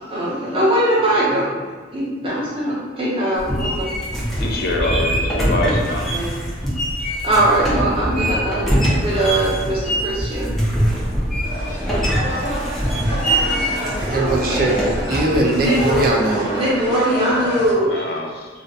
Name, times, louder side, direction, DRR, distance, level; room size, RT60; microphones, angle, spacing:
voice 1, 0.1-1.5 1.9-3.9 4.8-5.0 6.1-6.3 7.2-10.5 14.0-14.7 15.6-16.0 16.5-18.1, right 1 dB, 30° right, -7 dB, 0.8 m, -21 dB
sound 1, 3.4-16.1, equal, ahead, 0.5 m, -23 dB
voice 2, 4.4-6.1 17.9-18.5, left 2 dB, 55° left, 0 dB, 0.4 m, -24 dB
sound 2, 11.4-17.7, equal, 70° right, 0.9 m, -28 dB
voice 3, 14.0-16.5, right 2 dB, 50° right, 0 dB, 0.4 m, -20 dB
2.5 x 2.2 x 3.8 m, 1.4 s
head